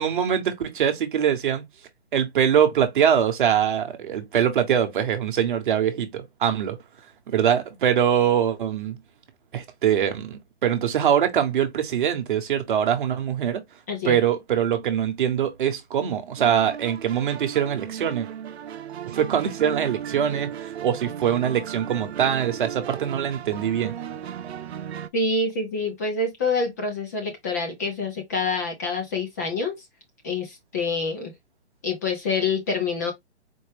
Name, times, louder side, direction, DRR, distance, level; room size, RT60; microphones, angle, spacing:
voice 1, 0.0-1.7 2.1-6.8 7.3-9.0 9.5-13.6 14.0-18.3 19.1-23.9, right 9 dB, 50° right, 0.9 m, -23 dB
voice 2, 13.9-14.2 25.1-29.8 30.2-31.3 31.8-33.1, left 3 dB, 15° left, 0.5 m, -26 dB
sound 1, 16.4-25.1, right 9 dB, 70° right, 0.6 m, -36 dB
4.4 x 2.1 x 3.2 m
hypercardioid pair, 160°, 34 cm